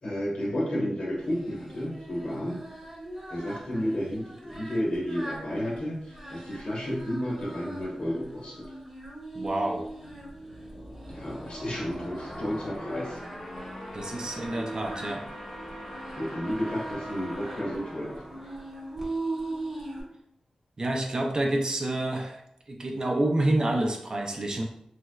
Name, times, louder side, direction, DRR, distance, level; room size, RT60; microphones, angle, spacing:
voice 1, 0.0-2.6 3.3-8.6 11.1-13.2 16.2-18.2, equal, 60° left, -4 dB, 1.1 m, -32 dB
Singing, 1.3-20.0, right 2 dB, 15° right, 1.0 m, -41 dB
voice 2, 9.3-9.9 13.9-15.2 20.8-22.4 22.7-24.6, right 1 dB, 40° right, 1 dB, 0.5 m, -28 dB
sound 1, 10.0-19.5, equal, 35° left, 0.9 m, -42 dB
3.3 x 3.0 x 2.3 m, 0.71 s
wide cardioid pair, 120°, 2 cm